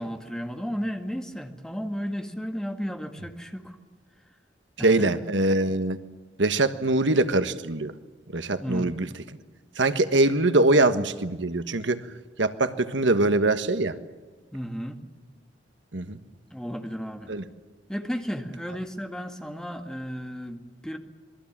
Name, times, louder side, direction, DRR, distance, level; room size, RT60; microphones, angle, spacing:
voice 1, 0.0-3.8 4.8-5.1 8.6-8.9 14.5-15.0 16.5-17.3 17.9-21.0, equal, 5° left, 5 dB, 2.0 m, -33 dB
voice 2, 4.8-6.0 6.4-7.9 8.3-9.1 9.8-12.0 12.4-13.9 15.9-16.2 17.3-17.4, right 2 dB, 75° right, 10 dB, 1.4 m, -23 dB
27.5 x 21.5 x 7.4 m, 1.3 s
head